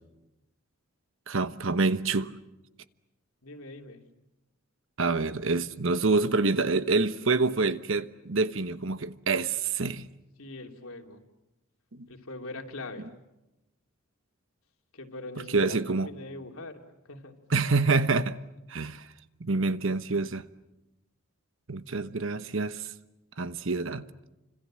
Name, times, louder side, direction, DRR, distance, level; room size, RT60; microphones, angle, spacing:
voice 1, 1.3-2.3 5.0-10.1 11.9-12.1 15.5-16.1 17.5-18.4 18.7-19.1 19.4-20.4 21.7-22.9 23.4-24.1, right 3 dB, 65° right, 1.1 m, -27 dB
voice 2, 3.4-4.0 10.4-11.2 12.1-13.1 14.9-17.3, left 2 dB, 90° left, 3.1 m, -42 dB
29.0 x 26.0 x 7.6 m
head